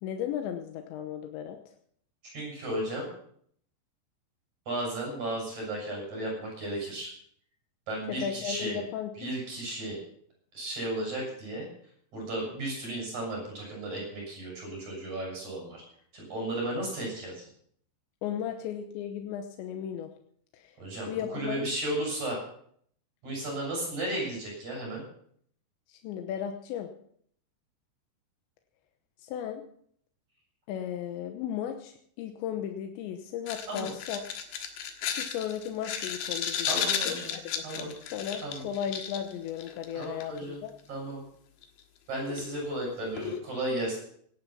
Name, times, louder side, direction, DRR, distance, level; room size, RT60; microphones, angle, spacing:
voice 1, 0.0-1.6 8.1-9.3 18.2-20.1 20.5-20.7 21.1-21.6 25.9-26.9 29.2-29.6 30.7-34.2 35.2-40.7, left 9 dB, 85° left, 5 dB, 3.3 m, -35 dB
voice 2, 2.3-3.1 4.7-7.1 7.9-8.8 9.2-10.0 10.5-11.7 12.1-15.8 16.1-17.5 20.8-22.4 23.2-25.0 33.7-33.9 36.7-37.4 37.6-37.9 38.4-38.6 39.9-40.6 40.9-41.2 42.1-44.0, right 1 dB, 40° right, -1 dB, 7.7 m, -34 dB
sound 1, 33.5-40.4 41.6-41.7 42.3-42.6 43.2-43.4, left 8 dB, 65° left, 2.9 m, -33 dB
17.5 x 10.5 x 5.8 m, 0.64 s
omnidirectional pair, 5.1 m